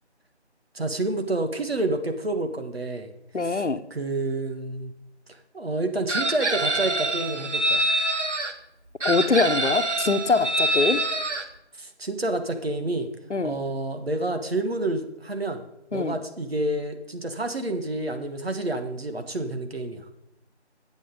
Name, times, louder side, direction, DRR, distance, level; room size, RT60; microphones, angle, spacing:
voice 1, 0.7-3.1 3.4-3.6 3.9-4.9 5.5-7.9 11.8-13.1 13.4-15.6 15.9-20.0, right 2 dB, 60° right, 6 dB, 1.6 m, -29 dB
voice 2, 3.3-3.8 9.0-11.0 13.3-13.6 15.9-16.2, left 4 dB, 85° left, 10 dB, 1.1 m, -23 dB
Chicken rooster, 6.1-8.5 9.0-11.4, right 2 dB, 85° right, 1.5 m, -25 dB
11.5 x 8.4 x 5.2 m, 0.87 s
figure-of-eight pair, 170°, 35 cm